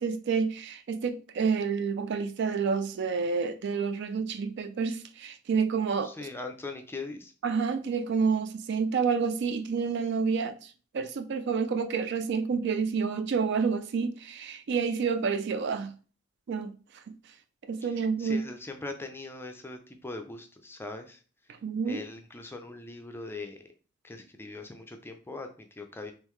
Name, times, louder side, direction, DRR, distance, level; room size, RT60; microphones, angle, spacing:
voice 1, 0.0-6.1 7.4-15.9 16.5-17.0 17.7-18.4 21.5-22.0, right 5 dB, 55° right, 0.4 m, -29 dB
voice 2, 6.0-7.3 17.8-21.2 21.9-23.6 24.0-26.1, left 3 dB, 10° left, 0.4 m, -41 dB
3.7 x 3.1 x 3.1 m
head